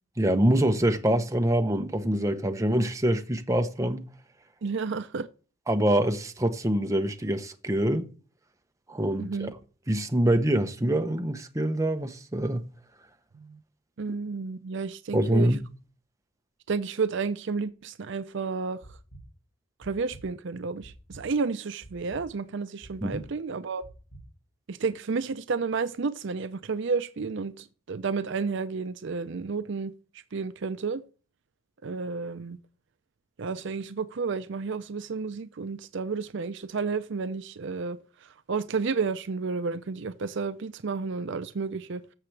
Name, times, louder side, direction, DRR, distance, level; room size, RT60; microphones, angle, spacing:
voice 1, 0.2-4.0 5.7-8.1 8.9-9.5 9.9-12.6 15.1-15.6 23.0-23.2, right 1 dB, 15° right, 0.8 m, -25 dB
voice 2, 4.6-5.3 9.2-9.5 13.3-13.6 14.0-15.5 16.7-18.8 19.8-23.9 24.7-29.9 30.3-31.0 31.8-32.6 33.4-38.0 38.5-42.0, right 4 dB, 60° right, 0.5 m, -31 dB
sound 1, 18.8-19.2 19.8-20.2 20.8-21.2 21.8-22.2 22.8-23.2 23.8-24.2, right 1 dB, 65° left, 2.3 m, -47 dB
15.0 x 6.8 x 3.3 m
head